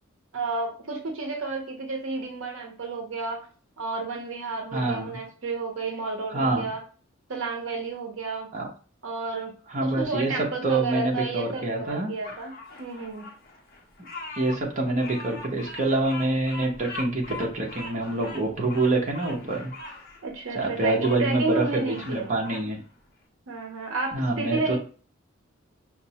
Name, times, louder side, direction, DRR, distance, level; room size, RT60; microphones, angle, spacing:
voice 1, 0.3-3.5 3.8-6.8 7.3-8.5 9.0-9.5 9.8-12.5 12.8-13.2 20.2-22.3 23.5-24.8, right 3 dB, 70° right, 2 dB, 0.7 m, -31 dB
voice 2, 4.7-5.2 6.3-6.7 8.5-8.7 9.7-10.3 10.6-12.1 14.3-19.7 20.5-22.8 24.1-24.8, right 2 dB, 40° right, -1 dB, 0.8 m, -26 dB
Bird vocalization bird call bird song, 12.2-21.2 21.7-22.7, left 2 dB, 45° left, 0.7 m, -41 dB
5.7 x 2.0 x 2.8 m, 0.40 s
head